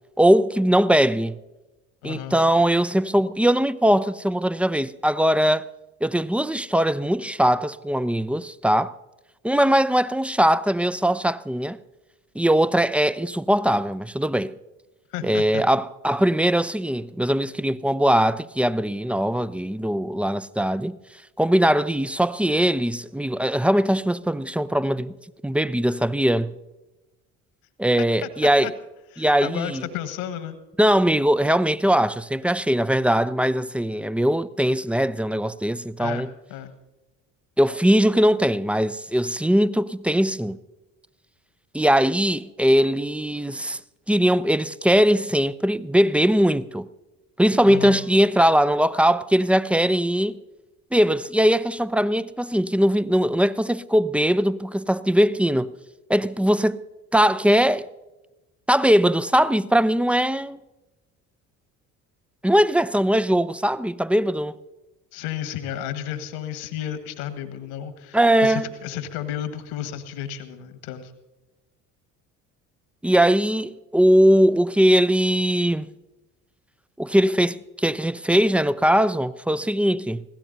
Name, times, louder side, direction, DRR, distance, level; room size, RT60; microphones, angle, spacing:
voice 1, 0.2-1.4 2.0-5.7 6.0-8.9 9.4-11.8 12.4-14.5 15.2-21.0 21.4-25.1 25.4-26.5 27.8-28.7 29.2-29.8 30.8-36.3 37.6-40.6 41.7-43.8 44.1-46.9 47.4-50.4 50.9-55.7 56.1-56.8 57.1-57.9 58.7-60.6 62.4-64.5 68.1-68.7 73.0-75.9 77.0-80.2, equal, 5° right, 0.4 m, -20 dB
voice 2, 2.0-2.4 15.1-15.6 28.0-28.3 28.6-28.7 29.1-30.6 36.0-36.7 47.6-48.0 65.1-71.1, left 10 dB, 70° left, 1.7 m, -32 dB
24.5 x 16.5 x 2.7 m
figure-of-eight pair, 50°, 44 cm